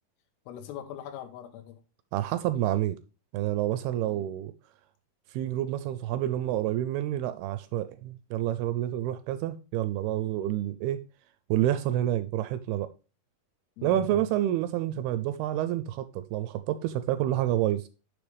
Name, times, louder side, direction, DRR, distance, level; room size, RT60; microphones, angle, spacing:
voice 1, 0.5-1.8 4.0-4.3 13.8-14.2, left 11 dB, 80° left, 3.1 m, -41 dB
voice 2, 2.1-3.0 3.3-4.5 5.3-11.0 11.5-12.9 13.8-17.9, right 13 dB, 80° right, 2.5 m, -28 dB
10.5 x 6.5 x 3.3 m
omnidirectional pair, 4.7 m